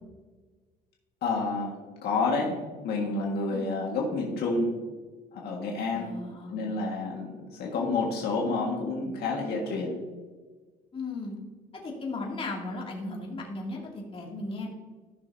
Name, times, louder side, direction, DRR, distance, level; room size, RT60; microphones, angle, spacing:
voice 1, 1.2-4.8 5.3-6.1 6.5-10.0, left 3 dB, 75° left, -1 dB, 1.7 m, -29 dB
voice 2, 5.9-6.8 10.9-11.3 11.7-14.7, left 2 dB, 30° left, -2 dB, 2.5 m, -36 dB
15.0 x 6.3 x 2.7 m, 1.4 s
cardioid pair, 110°, 17 cm